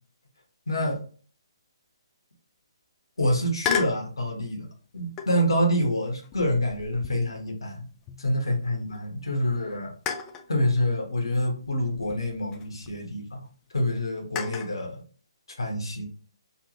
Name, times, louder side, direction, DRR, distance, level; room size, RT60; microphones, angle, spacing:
voice 1, 0.7-1.0 3.2-4.7 4.9-7.8 8.2-9.9 10.5-13.5 13.7-15.0 15.6-16.1, equal, 65° left, 1 dB, 1.1 m, -27 dB
sound 1, 3.6-4.1 5.2-5.6 6.2-8.6 8.9-9.0 10.1-10.5 11.6-13.0 14.4-14.8, left 8 dB, 15° left, 0.3 m, -34 dB
3.2 x 2.6 x 2.8 m, 0.41 s
figure-of-eight pair, 135°, 3 cm